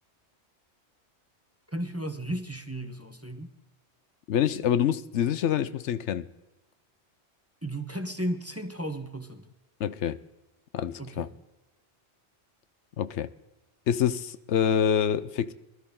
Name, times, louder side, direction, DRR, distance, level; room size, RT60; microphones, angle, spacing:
voice 1, 1.7-3.5 7.6-9.5 11.0-11.3, right 1 dB, 15° right, 0.9 m, -34 dB
voice 2, 4.3-6.3 9.8-10.2 10.7-11.3 13.0-13.3 13.9-15.5, left 9 dB, 80° left, 1.0 m, -26 dB
22.0 x 12.5 x 3.8 m
omnidirectional pair, 1.2 m